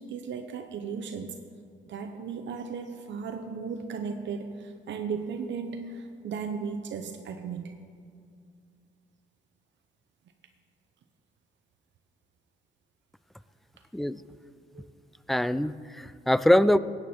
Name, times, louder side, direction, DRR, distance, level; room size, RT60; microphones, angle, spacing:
voice 1, 0.0-1.4 1.9-7.8 14.7-14.9, right 5 dB, 65° right, 6 dB, 0.8 m, -36 dB
voice 2, 15.3-16.8, left 1 dB, ahead, 16 dB, 0.3 m, -23 dB
16.0 x 9.0 x 4.3 m, 2.3 s
cardioid pair, 90°, 20 cm